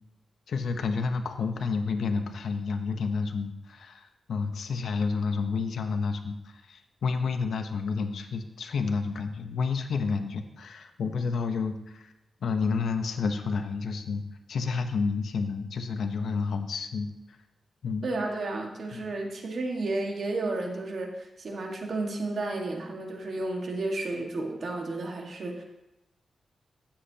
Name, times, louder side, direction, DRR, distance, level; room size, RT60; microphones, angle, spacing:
voice 1, 0.5-12.1 12.4-14.2 14.5-17.1 17.8-18.1 18.9-19.1, left 4 dB, 80° left, 7 dB, 0.9 m, -30 dB
voice 2, 18.0-25.6, right 2 dB, 65° right, 1 dB, 1.7 m, -32 dB
13.0 x 8.6 x 2.9 m, 0.94 s
wide cardioid pair, 95°, 0 cm